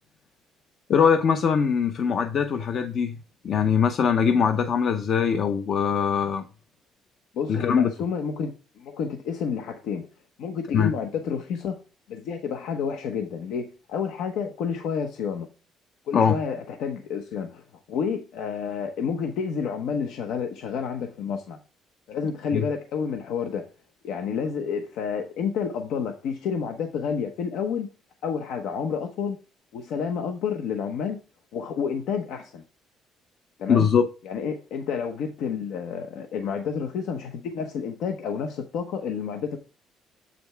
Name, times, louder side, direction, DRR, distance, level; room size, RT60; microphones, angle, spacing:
voice 1, 0.9-3.2 3.4-6.4 7.5-7.9 10.7-10.9 16.1-16.3 22.5-22.6 33.7-34.0, left 6 dB, 45° left, 0.6 m, -22 dB
voice 2, 7.3-10.1 10.4-11.8 12.1-15.5 16.1-21.6 22.1-23.7 24.0-27.9 28.2-29.4 29.7-31.2 31.5-32.6 33.6-33.9 34.2-39.6, left 6 dB, 70° left, 0.9 m, -30 dB
7.7 x 5.2 x 3.3 m
cardioid pair, 160°, 0 cm